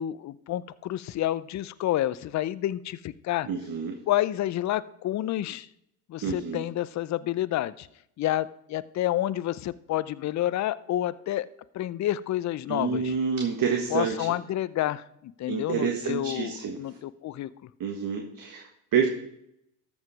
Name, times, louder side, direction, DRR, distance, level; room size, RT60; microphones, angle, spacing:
voice 1, 0.0-3.5 4.1-5.7 6.1-7.9 8.2-11.5 11.7-13.1 13.9-17.5, left 13 dB, 35° left, 17 dB, 0.6 m, -29 dB
voice 2, 3.5-4.0 6.2-6.7 12.7-14.3 15.5-16.8 17.8-19.1, right 6 dB, 45° right, 3 dB, 1.5 m, -28 dB
13.5 x 5.4 x 4.8 m, 0.75 s
hypercardioid pair, 65°, 47 cm